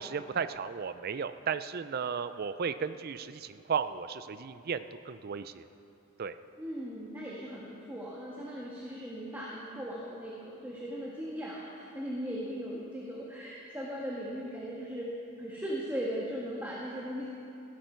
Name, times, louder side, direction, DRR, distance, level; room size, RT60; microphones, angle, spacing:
voice 1, 0.0-5.7 6.2-6.3, right 6 dB, 45° right, 12 dB, 0.4 m, -34 dB
voice 2, 6.6-15.1 15.4-17.3, equal, 10° right, -5 dB, 1.5 m, -38 dB
16.5 x 13.0 x 4.5 m, 2.8 s
head